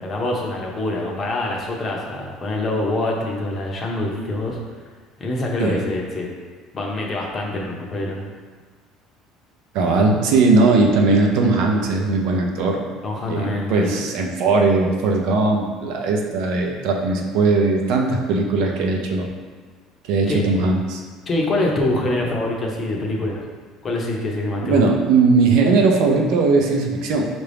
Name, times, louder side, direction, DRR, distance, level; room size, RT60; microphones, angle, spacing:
voice 1, 0.0-4.6 5.2-6.3 6.7-8.3 13.0-14.0 20.3-20.4 21.3-23.5 23.8-24.8, left 2 dB, 30° left, -1 dB, 0.7 m, -25 dB
voice 2, 9.7-12.8 13.3-19.3 20.0-21.0 24.6-27.2, right 3 dB, 70° right, 1 dB, 0.6 m, -19 dB
5.7 x 2.6 x 3.4 m, 1.5 s
cardioid pair, 150°, 0 cm